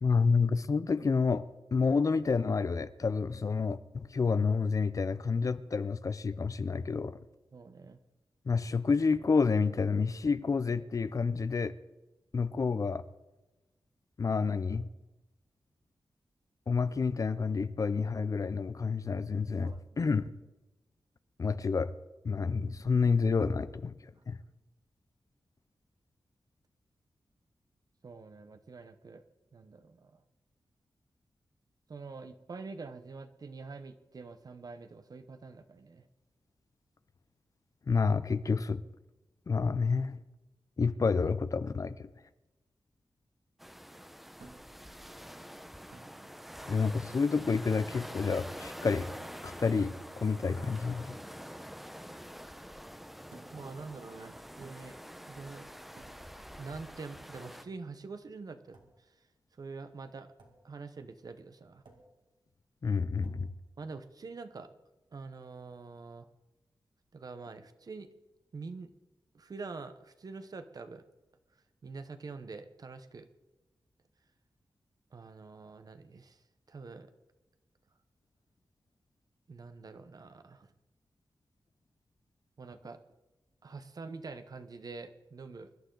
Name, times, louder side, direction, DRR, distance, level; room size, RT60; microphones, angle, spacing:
voice 1, 0.0-1.4 1.7-7.2 8.5-11.7 12.3-13.0 14.2-14.9 16.7-20.3 21.4-21.9 22.2-24.0 24.3-24.4 37.9-38.8 39.5-40.2 40.8-42.1 46.7-49.1 49.4-51.2 62.8-63.5, left 5 dB, 45° left, 14 dB, 0.5 m, -29 dB
voice 2, 7.5-8.0 19.6-20.2 24.2-24.3 28.0-29.2 29.5-30.2 31.9-36.1 46.2-46.7 53.5-55.0 55.3-55.7 56.6-59.1 59.6-60.3 60.6-61.8 63.8-64.7 65.1-66.3 67.1-68.1 68.5-68.9 69.3-71.0 71.8-73.3 75.1-77.1 79.5-80.7 82.6-83.0 83.6-85.7, right 4 dB, 50° right, 9 dB, 0.9 m, -46 dB
sound 1, 43.6-57.6, equal, ahead, 0.8 m, -46 dB
sound 2, 44.4-44.8 45.9-46.2 47.4-47.8 49.0-49.4 50.5-50.8 53.3-53.7 54.6-55.0 56.0-56.3 57.4-57.8 58.7-59.0 60.4-60.6 61.8-62.2 63.2-63.5, right 3 dB, 75° right, 2.2 m, -55 dB
24.0 x 11.5 x 3.9 m, 1.1 s
wide cardioid pair, 135°, 8 cm